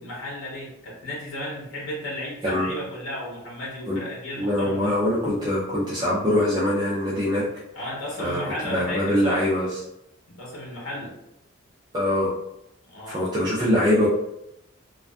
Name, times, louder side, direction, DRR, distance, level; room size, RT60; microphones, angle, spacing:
voice 1, 0.0-4.9 7.7-9.4 10.3-11.1 12.9-13.3, left 1 dB, 80° left, -5 dB, 0.8 m, -34 dB
voice 2, 4.4-7.4 8.2-9.8 11.9-12.3 13.1-14.1, left 1 dB, 20° right, -7 dB, 0.4 m, -23 dB
2.5 x 2.2 x 2.2 m, 0.83 s
head